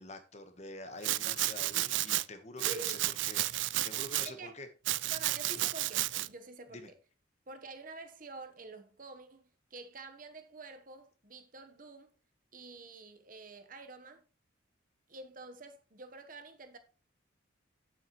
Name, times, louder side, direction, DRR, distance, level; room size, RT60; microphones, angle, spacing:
voice 1, 0.0-3.0 3.2-3.4 3.8-4.7 6.7-6.9, left 2 dB, 35° left, 1.1 m, -46 dB
Domestic sounds home sounds, 1.0-2.2 2.6-4.3 4.9-6.3, right 17 dB, 70° right, 0.3 m, -32 dB
voice 2, 2.6-3.0 4.2-4.6 5.1-6.8 7.5-12.1 12.5-14.3 15.1-16.8, right 3 dB, 45° right, 1.0 m, -48 dB
9.0 x 7.5 x 3.0 m
head